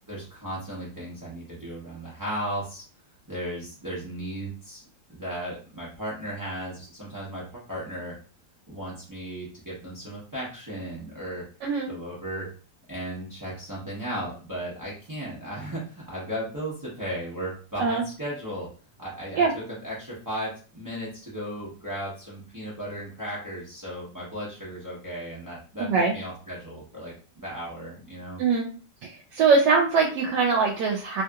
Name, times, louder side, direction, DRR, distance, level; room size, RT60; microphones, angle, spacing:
voice 1, 0.1-2.8 3.3-4.8 5.1-8.1 8.7-11.4 11.9-12.5 12.9-18.7 19.0-19.4 19.8-28.4, equal, 30° right, -7 dB, 0.3 m, -35 dB
voice 2, 11.6-11.9 17.8-18.0 19.4-19.5 25.8-26.1 28.4-28.7 29.0-31.2, right 4 dB, 80° right, 0 dB, 1.2 m, -22 dB
3.0 x 2.8 x 2.3 m, 0.39 s
omnidirectional pair, 1.9 m